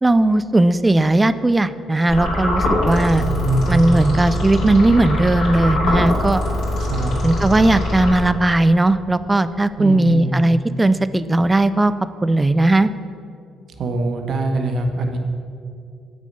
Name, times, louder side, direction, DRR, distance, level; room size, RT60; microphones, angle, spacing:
voice 1, 0.0-3.3 3.7-6.4 7.2-11.9 12.2-12.9, right 2 dB, 15° right, 13 dB, 0.3 m, -17 dB
sound 1, 2.1-8.6, left 1 dB, 85° left, 2.4 m, -22 dB
voice 2, 3.2-3.8 6.8-7.1 9.8-10.4 13.8-15.2, right 2 dB, 65° right, 4 dB, 1.0 m, -23 dB
8.3 x 6.3 x 5.4 m, 2.4 s
cardioid pair, 90°, 0 cm